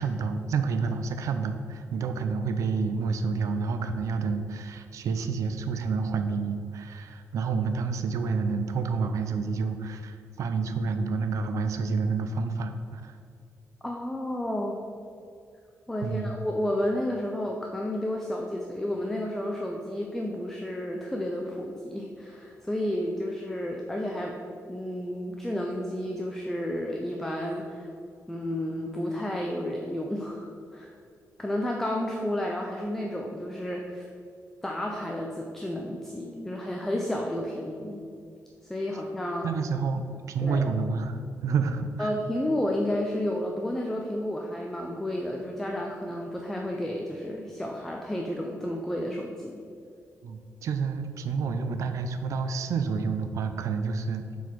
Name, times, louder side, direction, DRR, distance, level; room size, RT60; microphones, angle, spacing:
voice 1, 0.0-13.2 16.0-16.3 39.4-40.0 40.3-42.1 50.2-54.4, right 4 dB, 65° right, 7 dB, 0.4 m, -29 dB
voice 2, 13.8-14.8 15.9-24.4 24.7-27.9 28.3-30.9 31.4-34.1 34.6-38.0 38.7-39.5 40.4-40.6 42.0-49.6, left 1 dB, 5° left, 0 dB, 0.5 m, -31 dB
7.0 x 4.1 x 4.5 m, 2.4 s
wide cardioid pair, 155°, 6 cm